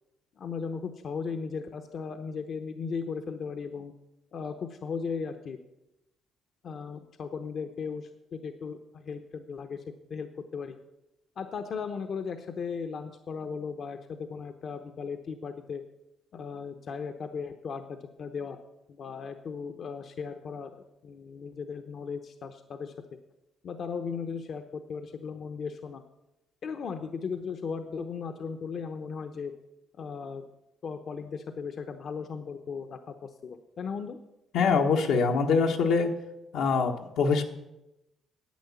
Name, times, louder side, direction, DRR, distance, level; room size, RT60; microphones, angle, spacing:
voice 1, 0.4-3.9 4.3-5.6 6.6-9.8 10.1-10.8 11.4-15.8 16.3-18.6 18.9-20.7 21.0-22.9 23.6-26.0 26.6-29.5 30.0-30.5 30.8-34.2, left 5 dB, 60° left, 7 dB, 0.8 m, -37 dB
voice 2, 34.5-36.1 36.5-37.4, left 5 dB, 85° left, 3 dB, 1.3 m, -24 dB
10.5 x 8.4 x 7.0 m, 0.93 s
cardioid pair, 90°, 0 cm